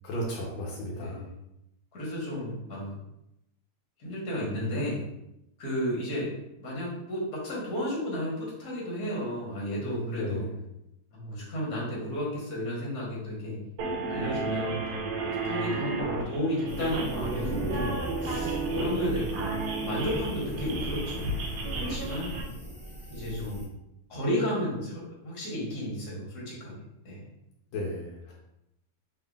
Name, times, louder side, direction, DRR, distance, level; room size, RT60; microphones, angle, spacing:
voice 1, 0.0-1.2 9.7-10.5 27.7-28.3, equal, 85° left, -3 dB, 1.5 m, -34 dB
voice 2, 0.9-1.4 1.9-2.9 4.0-5.1 5.6-6.3 6.6-10.5 11.1-13.6 14.1-15.1 15.4-21.4 21.7-22.4 23.1-23.7 24.1-26.7 27.0-27.3, equal, 55° left, -4 dB, 1.6 m, -33 dB
sound 1, 13.8-22.4, right 3 dB, 70° right, 1.1 m, -33 dB
sound 2, 16.7-23.6, equal, 25° left, 0.5 m, -37 dB
3.7 x 3.5 x 2.3 m, 0.85 s
omnidirectional pair, 2.1 m